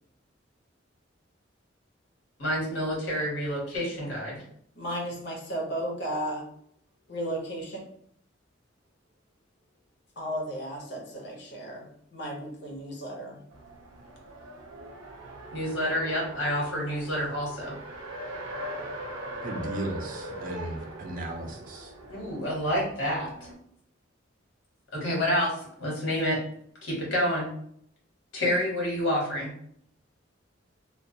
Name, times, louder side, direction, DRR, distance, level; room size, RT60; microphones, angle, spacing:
voice 1, 2.4-4.4 15.5-17.7 22.1-23.3 24.9-25.5 25.8-26.4 26.8-27.5 28.3-29.5, equal, 75° left, -4 dB, 1.1 m, -28 dB
voice 2, 4.8-6.4 7.1-7.8 10.2-13.4, right 1 dB, 60° left, -1 dB, 0.7 m, -34 dB
Race car auto racing, 13.5-23.5, right 1 dB, 90° right, 0.6 m, -41 dB
voice 3, 19.4-21.9, right 1 dB, 45° right, 2 dB, 0.4 m, -36 dB
2.3 x 2.2 x 2.6 m, 0.67 s
head